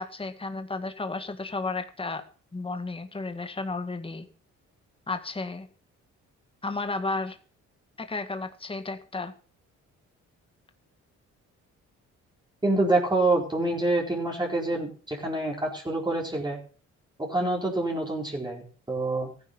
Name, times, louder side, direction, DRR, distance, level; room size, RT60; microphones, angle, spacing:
voice 1, 0.0-2.2 2.5-4.3 5.1-5.7 6.6-7.4 8.0-9.3, left 3 dB, 20° left, 8 dB, 1.8 m, -33 dB
voice 2, 12.6-16.6 17.3-19.3, right 2 dB, 15° right, -1 dB, 4.5 m, -26 dB
14.5 x 9.8 x 5.9 m, 0.41 s
cardioid pair, 90°, 30 cm